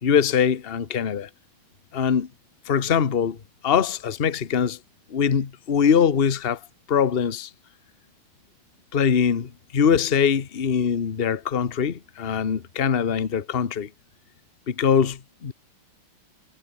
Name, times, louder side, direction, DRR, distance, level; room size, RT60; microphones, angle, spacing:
voice 1, 0.0-1.3 1.9-2.3 2.7-3.4 3.6-4.8 5.1-6.6 6.9-7.5 8.9-13.9 14.7-15.5, left 7 dB, 35° left, 1.2 m, -22 dB
omnidirectional pair, 2.3 m